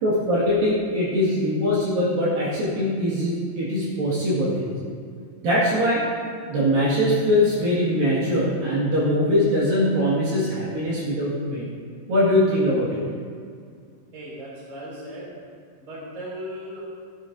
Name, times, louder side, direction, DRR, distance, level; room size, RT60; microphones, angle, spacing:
voice 1, 0.0-4.7 5.4-6.0 6.5-11.7 12.1-13.0, left 1 dB, 60° right, -8 dB, 3.3 m, -22 dB
voice 2, 14.1-15.3 15.8-16.8, equal, 20° right, -6 dB, 2.5 m, -37 dB
13.0 x 11.5 x 2.6 m, 2.2 s
omnidirectional pair, 5.2 m